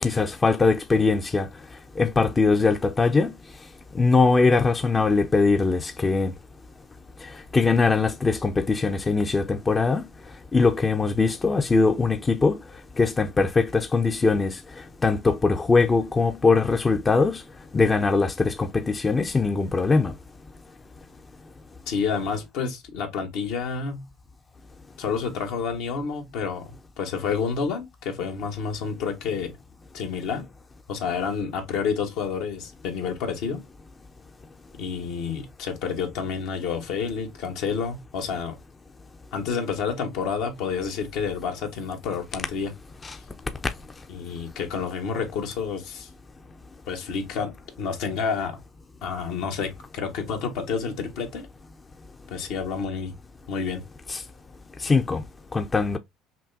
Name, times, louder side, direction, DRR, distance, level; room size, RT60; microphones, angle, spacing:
voice 1, 0.0-1.5 2.0-3.3 4.0-6.3 7.5-10.1 10.5-12.6 13.0-14.6 15.0-17.4 17.7-20.1 43.0-43.1 54.1-54.2 54.8-55.2 55.5-56.0, left 4 dB, 25° left, 0.6 m, -21 dB
voice 2, 21.9-24.1 25.0-26.7 27.0-29.6 29.9-30.5 30.9-33.6 34.8-38.6 39.3-42.7 44.1-46.1 46.9-48.6 49.0-51.5 52.3-53.1 53.5-53.8, left 6 dB, 75° left, 1.3 m, -29 dB
5.9 x 2.2 x 2.6 m
supercardioid pair, 80°, 0 cm